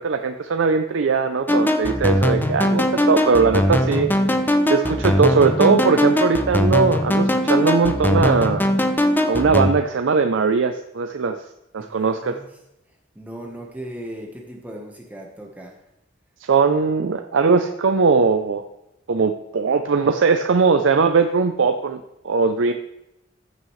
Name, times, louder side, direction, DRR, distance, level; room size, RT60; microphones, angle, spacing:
voice 1, 0.0-4.1 4.7-8.7 9.3-11.4 11.7-12.4 16.5-18.6 19.1-22.7, right 4 dB, 75° right, 7 dB, 0.5 m, -19 dB
sound 1, 1.5-9.7, equal, 10° left, 0.6 m, -20 dB
voice 2, 11.8-12.6 12.9-15.8, right 1 dB, 10° right, 0 dB, 1.2 m, -38 dB
14.0 x 6.3 x 3.2 m, 0.88 s
head